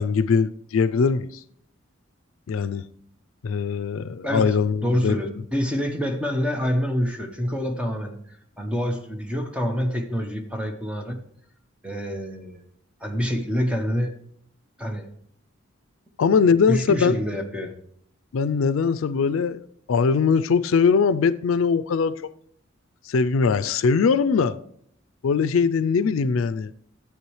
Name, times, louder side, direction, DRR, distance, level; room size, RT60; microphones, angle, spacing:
voice 1, 0.0-1.4 2.5-2.8 3.4-5.2 16.2-17.2 18.3-19.6 19.9-22.2 23.1-24.6 25.2-26.7, left 5 dB, 80° left, 0.4 m, -21 dB
voice 2, 4.2-4.6 4.8-11.2 11.8-12.6 13.0-14.1 14.8-15.0 16.7-17.7, equal, 5° right, 0.9 m, -27 dB
13.5 x 8.2 x 3.1 m
head